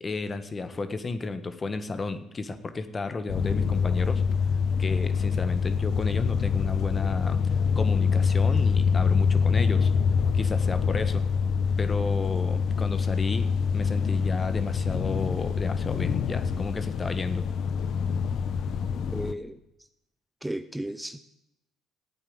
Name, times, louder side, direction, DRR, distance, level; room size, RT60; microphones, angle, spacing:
voice 1, 0.0-4.2 4.8-9.9 10.3-11.3 11.8-17.5, left 3 dB, 30° left, 10 dB, 1.5 m, -33 dB
sound 1, 3.3-19.3, left 6 dB, 60° left, 0.9 m, -25 dB
voice 2, 19.1-19.6 20.4-21.2, right 1 dB, 10° right, 11 dB, 0.8 m, -34 dB
14.0 x 8.8 x 8.0 m, 0.83 s
hypercardioid pair, 65°, 0 cm